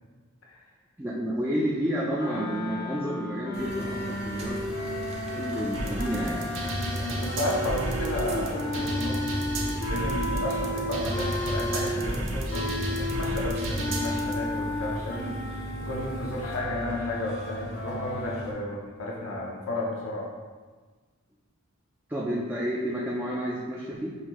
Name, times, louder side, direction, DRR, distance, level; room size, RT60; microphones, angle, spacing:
voice 1, 1.0-4.6 4.9-6.4 7.6-7.7 22.1-24.1, equal, 10° right, -5 dB, 0.4 m, -30 dB
sound 1, 2.1-12.1 12.5-18.4, left 1 dB, 45° left, 0.5 m, -34 dB
sound 2, 3.5-18.5, right 1 dB, 30° right, 0.8 m, -37 dB
sound 3, 5.7-14.3, right 1 dB, 65° right, 0.7 m, -32 dB
voice 2, 6.8-9.2 9.9-20.3, left 1 dB, 80° left, -3 dB, 0.7 m, -33 dB
5.6 x 2.6 x 3.0 m, 1.4 s
head